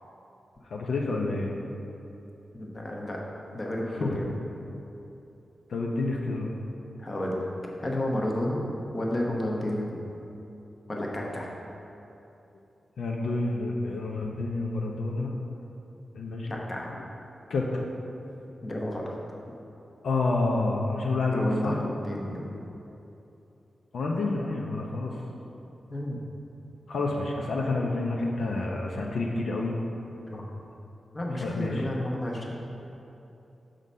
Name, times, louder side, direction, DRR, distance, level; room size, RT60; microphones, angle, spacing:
voice 1, 0.7-1.5 4.0-4.2 5.7-6.5 13.0-15.3 16.1-16.6 17.5-17.8 20.0-21.8 23.9-25.2 26.9-29.7 31.4-31.8, left 2 dB, 80° left, -1 dB, 0.6 m, -29 dB
voice 2, 2.5-3.2 3.5-4.5 7.0-7.5 7.8-10.0 10.9-11.5 16.5-16.9 18.6-19.1 21.3-22.5 25.9-26.2 30.3-30.5 31.1-32.5, left 1 dB, 30° left, -1 dB, 0.8 m, -31 dB
6.4 x 3.8 x 5.4 m, 2.9 s
wide cardioid pair, 110°, 0 cm